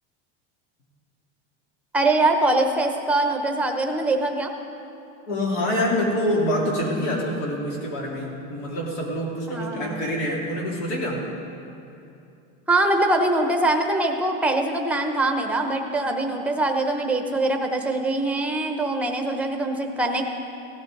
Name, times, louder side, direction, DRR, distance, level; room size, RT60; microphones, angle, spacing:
voice 1, 1.9-4.5 9.5-10.0 12.7-20.3, right 2 dB, 5° right, 4 dB, 0.7 m, -23 dB
voice 2, 5.3-11.2, left 1 dB, 80° left, -2 dB, 3.3 m, -26 dB
17.0 x 12.5 x 3.9 m, 2.7 s
supercardioid pair, 155°, 36 cm